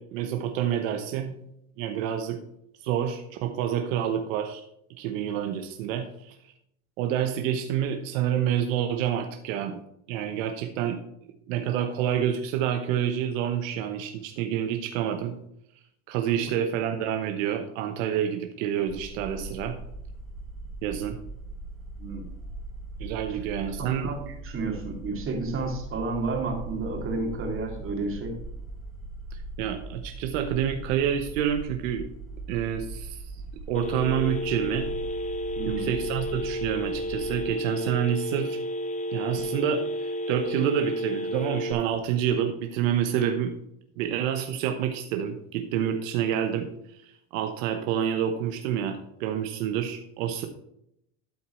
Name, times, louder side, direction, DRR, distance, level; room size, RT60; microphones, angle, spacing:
voice 1, 0.0-1.4 1.8-2.4 2.8-4.6 5.0-6.4 7.0-9.8 10.1-11.0 11.5-15.4 16.1-19.8 20.8-21.2 23.0-24.1 29.3-32.1 32.5-33.4 33.7-34.9 35.7-38.6 39.1-43.5 44.0-50.5, right 9 dB, 75° right, 6 dB, 1.0 m, -28 dB
sound 1, 18.9-37.5, right 2 dB, ahead, 1.7 m, -40 dB
voice 2, 23.8-28.3 35.6-35.9, right 3 dB, 30° right, 2 dB, 2.5 m, -31 dB
Telephone, 33.7-41.7, equal, 20° left, 0.9 m, -31 dB
13.0 x 4.5 x 4.4 m, 0.77 s
supercardioid pair, 120°, 39 cm